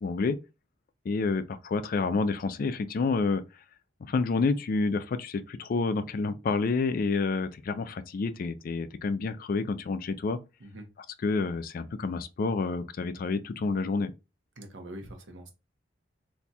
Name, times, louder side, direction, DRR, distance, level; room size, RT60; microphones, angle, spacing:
voice 1, 0.0-0.4 1.1-3.4 4.0-10.4 11.2-14.1, left 4 dB, 50° left, 0.3 m, -29 dB
voice 2, 14.6-15.5, right 1 dB, 75° right, 0.9 m, -43 dB
2.6 x 2.3 x 4.0 m
head